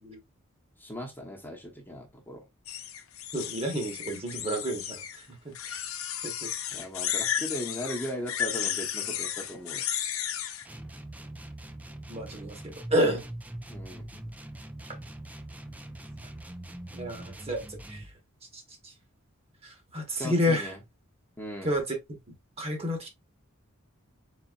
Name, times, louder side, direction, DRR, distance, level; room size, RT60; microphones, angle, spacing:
voice 1, 0.8-2.4 6.7-9.9 13.7-14.1 20.2-20.8 21.4-21.7, equal, 10° left, 0.9 m, -38 dB
sound 1, 2.7-5.2 5.5-10.7, left 9 dB, 80° left, 0.8 m, -33 dB
voice 2, 3.3-5.3 5.6-5.8 6.2-6.5 12.1-13.3 16.9-18.0 18.5-18.9 19.6-20.7 21.6-22.0 22.6-23.1, equal, 30° right, 1.2 m, -30 dB
sound 2, 10.6-18.1, right 1 dB, 5° right, 0.4 m, -42 dB
4.1 x 4.0 x 2.3 m
head